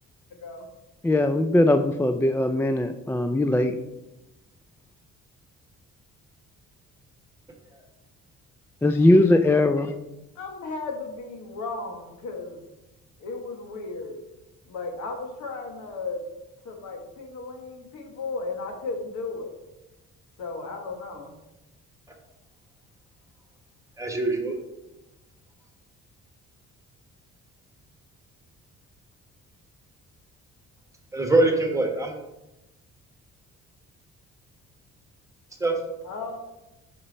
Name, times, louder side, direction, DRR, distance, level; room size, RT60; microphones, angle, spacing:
voice 1, 1.0-3.8 8.8-9.9, left 1 dB, 10° left, 7 dB, 0.3 m, -20 dB
voice 2, 10.3-12.6 13.2-14.2 14.7-16.2 16.6-19.5 20.4-21.3 36.1-36.4, left 3 dB, 80° left, 2 dB, 1.5 m, -35 dB
voice 3, 24.0-24.6 31.1-32.2 35.6-35.8, right 2 dB, 10° right, 2 dB, 1.3 m, -23 dB
5.4 x 5.4 x 4.2 m, 0.96 s
cardioid pair, 90°, 30 cm